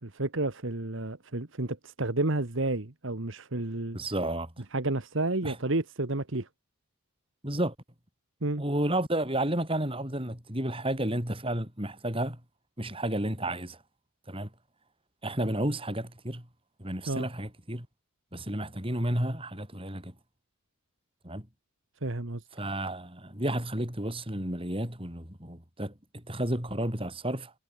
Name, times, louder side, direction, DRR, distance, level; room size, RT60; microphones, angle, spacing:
voice 1, 0.0-4.0 4.7-6.5 8.4-8.6 17.1-17.3 22.0-22.4, right 2 dB, 60° right, 1.6 m, -31 dB
voice 2, 3.9-4.6 5.4-5.6 7.4-7.7 8.6-12.4 12.8-13.8 14.3-14.5 15.2-16.5 16.8-17.9 18.3-20.2 21.2-21.5 22.5-27.5, right 1 dB, 25° right, 7.8 m, -32 dB
head